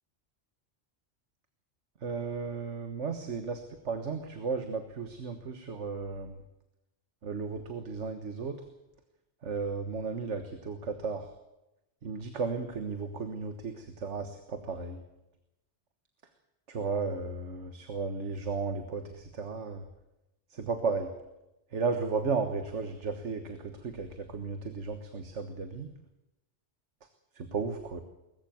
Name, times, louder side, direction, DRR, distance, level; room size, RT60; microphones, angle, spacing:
voice 1, 2.0-3.6 3.8-6.4 7.2-8.6 9.4-11.3 12.0-15.0 16.7-19.8 20.5-21.1 21.7-25.9 27.4-28.0, right 4 dB, 75° right, 7 dB, 1.7 m, -34 dB
20.0 x 14.5 x 9.4 m, 0.94 s
omnidirectional pair, 1.2 m